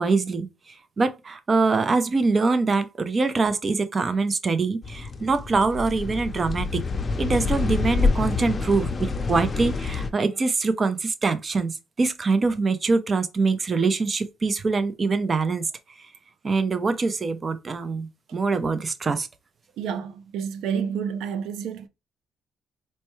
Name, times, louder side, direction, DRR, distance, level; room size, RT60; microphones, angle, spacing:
voice 1, 0.0-6.8 7.2-15.7 16.4-19.3, right 4 dB, 35° right, 0.6 m, -24 dB
sound 1, 4.8-10.1, left 4 dB, 35° left, 0.6 m, -27 dB
voice 2, 19.8-21.9, right 7 dB, 90° right, 0.5 m, -29 dB
4.3 x 2.2 x 3.0 m
cardioid pair, 90°, 0 cm